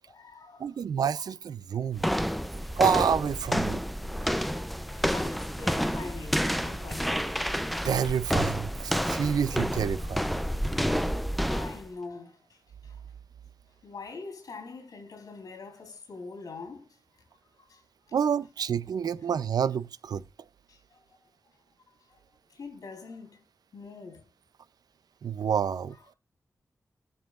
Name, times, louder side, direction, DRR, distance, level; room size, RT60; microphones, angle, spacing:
voice 1, 0.0-0.8 4.2-7.3 10.6-12.4 12.8-13.0 13.8-16.9 17.7-17.8 20.7-21.0 22.5-23.4 23.7-24.2, left 4 dB, 65° left, 3.7 m, -44 dB
voice 2, 0.6-2.1 2.8-3.8 7.8-10.3 18.1-20.2 25.2-25.9, right 7 dB, 80° right, 0.5 m, -28 dB
sound 1, 2.0-11.9, equal, ahead, 0.5 m, -29 dB
18.5 x 7.3 x 2.4 m
wide cardioid pair, 105°, 7 cm